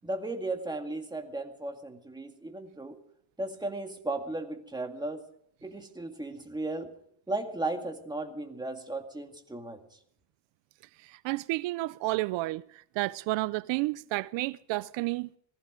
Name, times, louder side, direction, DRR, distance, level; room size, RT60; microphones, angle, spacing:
voice 1, 0.0-3.0 3.4-5.2 5.6-6.9 7.3-9.8, right 2 dB, 10° right, 2.1 m, -35 dB
voice 2, 11.1-12.6 13.0-15.4, right 20 dB, 80° right, 0.6 m, -31 dB
19.5 x 14.5 x 5.0 m
cardioid pair, 120°, 44 cm